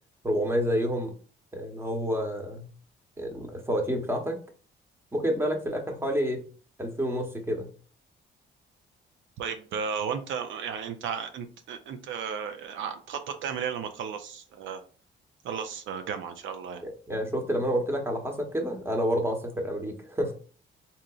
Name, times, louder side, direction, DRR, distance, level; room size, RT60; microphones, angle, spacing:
voice 1, 0.2-1.1 1.5-2.7 3.2-4.4 5.1-6.4 6.8-7.7 16.8-20.3, equal, 10° right, 3 dB, 0.9 m, -29 dB
voice 2, 9.4-14.8 15.4-16.8, right 7 dB, 75° right, 7 dB, 0.5 m, -34 dB
3.6 x 2.8 x 2.3 m, 0.40 s
cardioid pair, 90°, 20 cm